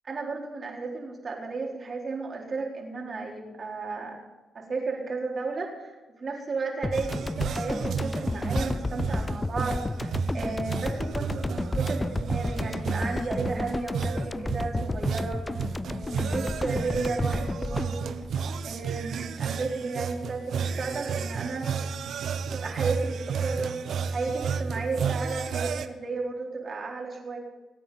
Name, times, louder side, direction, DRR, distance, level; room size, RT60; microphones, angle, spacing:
voice 1, 0.0-4.2 4.5-15.4 15.9-18.0 18.6-21.7 22.5-23.7 24.1-27.4, right 4 dB, 50° right, -1 dB, 4.2 m, -33 dB
sound 1, 6.8-19.3, left 2 dB, 25° left, 0.3 m, -32 dB
Islamic Zikr sufi Nakshibandi, 6.9-25.9, right 6 dB, 65° right, 0.9 m, -32 dB
21.5 x 9.1 x 4.2 m, 1.2 s
supercardioid pair, 50°, 0 cm